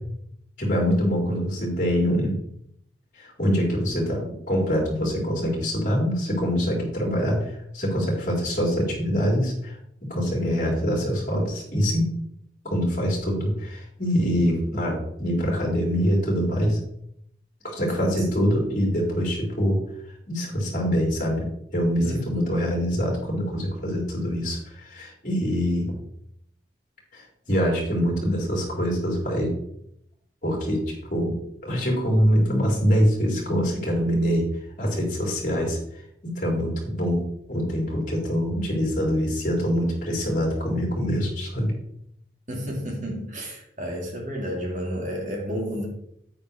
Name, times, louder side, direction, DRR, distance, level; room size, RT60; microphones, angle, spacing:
voice 1, 0.6-2.4 3.1-9.8 10.1-12.1 12.6-16.8 17.6-19.8 20.3-21.5 21.7-26.0 27.1-29.5 30.4-30.8 31.1-31.3 31.6-34.4 34.8-35.8 36.2-37.2 37.5-41.7, equal, 45° left, -2 dB, 4.2 m, -24 dB
voice 2, 17.9-18.6 22.0-22.5 42.5-45.9, equal, 45° right, 0 dB, 2.2 m, -31 dB
9.7 x 9.3 x 3.4 m, 0.72 s
head